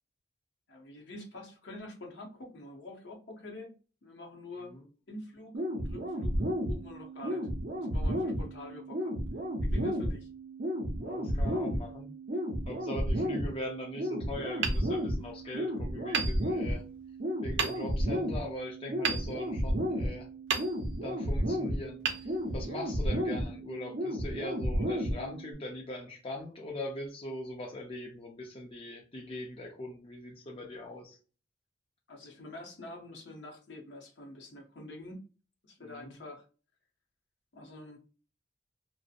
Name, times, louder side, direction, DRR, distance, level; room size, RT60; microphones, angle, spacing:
voice 1, 0.7-3.8 4.0-4.7 5.1-6.4 6.7-9.2 9.6-10.3 32.1-35.2 35.6-36.4 37.5-38.0, left 1 dB, 70° left, 1 dB, 0.7 m, -46 dB
voice 2, 4.5-4.8 11.0-12.1 12.7-16.8 17.4-20.3 21.0-31.2 35.8-36.2, left 1 dB, 30° left, 0 dB, 0.5 m, -41 dB
sound 1, 5.5-25.5, equal, 50° right, 0.6 m, -33 dB
Hammer, 14.6-15.6 16.1-17.0 17.6-18.2 19.0-20.0 20.5-21.2 22.0-23.0, right 6 dB, 90° right, 0.4 m, -35 dB
2.7 x 2.0 x 2.4 m, 0.35 s
head